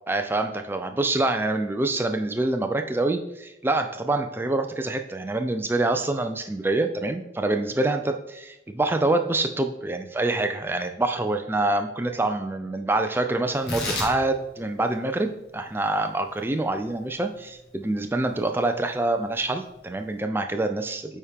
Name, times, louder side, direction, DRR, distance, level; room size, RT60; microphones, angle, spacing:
voice 1, 0.1-21.2, right 2 dB, 10° right, 6 dB, 0.4 m, -26 dB
Tearing, 13.5-20.2, left 2 dB, 60° left, 1.7 m, -38 dB
8.4 x 4.3 x 3.5 m, 0.87 s
head